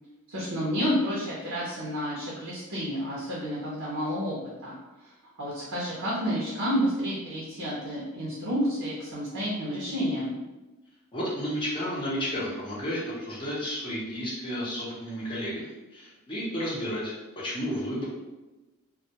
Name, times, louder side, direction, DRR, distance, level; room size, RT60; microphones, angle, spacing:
voice 1, 0.3-4.3 4.6-10.3, equal, 70° right, -6 dB, 0.6 m, -30 dB
voice 2, 11.1-18.0, equal, 25° left, -8 dB, 0.6 m, -32 dB
2.2 x 2.1 x 2.8 m, 1.1 s
head